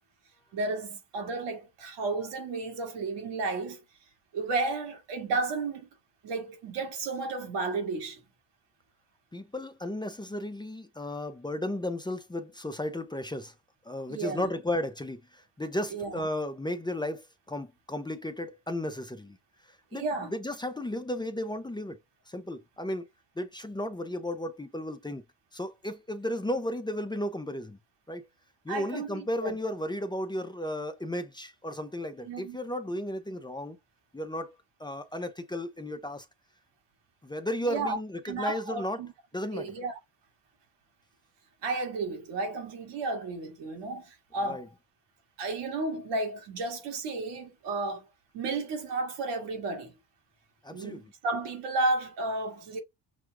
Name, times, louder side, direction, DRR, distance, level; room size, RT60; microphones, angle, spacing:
voice 1, 0.5-3.8 4.3-5.9 6.2-8.2 14.1-14.5 15.9-16.2 19.9-20.3 28.7-29.5 32.2-32.6 37.7-38.0 38.3-39.1 39.5-39.9 41.6-44.6 45.4-48.1 48.3-49.9 50.7-52.8, right 3 dB, 85° right, 1.9 m, -32 dB
voice 2, 9.3-13.5 13.9-19.4 19.7-22.0 22.3-23.1 23.4-25.2 25.5-27.8 28.1-28.3 28.6-33.8 34.1-36.3 37.2-39.0 39.3-39.7 44.4-44.7 50.6-51.0, left 1 dB, 10° left, 0.7 m, -34 dB
6.1 x 2.3 x 3.4 m
cardioid pair, 110°, 41 cm